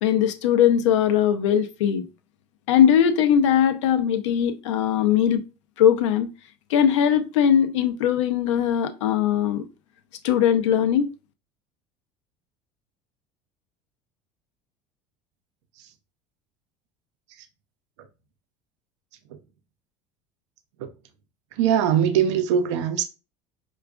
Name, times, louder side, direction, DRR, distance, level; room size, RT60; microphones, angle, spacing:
voice 1, 0.0-2.1 2.7-5.4 5.8-6.3 6.7-9.6 10.2-11.1, left 9 dB, 90° left, 0.4 m, -20 dB
voice 2, 21.6-23.0, right 8 dB, 85° right, 0.5 m, -21 dB
4.8 x 2.3 x 2.3 m
supercardioid pair, 85°, 15 cm